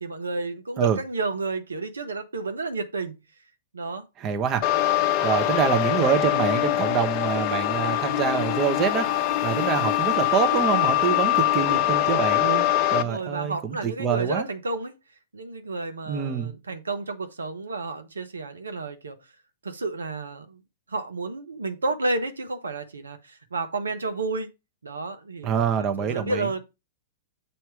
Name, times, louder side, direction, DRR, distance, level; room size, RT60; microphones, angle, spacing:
voice 1, 0.0-3.1 3.7-4.0 13.0-14.9 15.3-19.2 19.6-20.6 20.9-24.5 24.8-26.6, right 3 dB, 80° right, 0.9 m, -31 dB
voice 2, 4.2-4.6 5.2-14.5 16.1-16.5 25.4-26.5, right 7 dB, 30° right, 1.0 m, -26 dB
sound 1, 4.6-13.0, left 13 dB, 40° left, 0.6 m, -23 dB
7.0 x 2.9 x 4.8 m
figure-of-eight pair, 105°, 0 cm